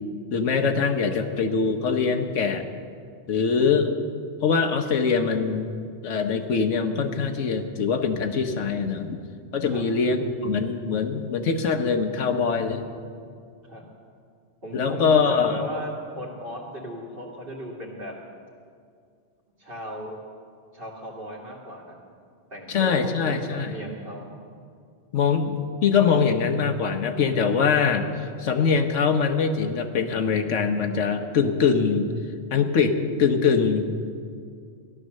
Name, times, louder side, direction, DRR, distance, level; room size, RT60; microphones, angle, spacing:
voice 1, 0.3-2.7 3.3-3.9 4.4-5.7 6.0-9.2 9.5-12.9 14.7-15.6 22.7-23.7 25.1-32.1 32.5-33.9, left 5 dB, 75° left, 6 dB, 1.3 m, -23 dB
voice 2, 14.6-18.1 19.6-20.2 20.7-21.9 22.5-24.2, equal, 50° right, -2 dB, 2.5 m, -36 dB
14.5 x 11.0 x 6.5 m, 2.2 s
omnidirectional pair, 1.3 m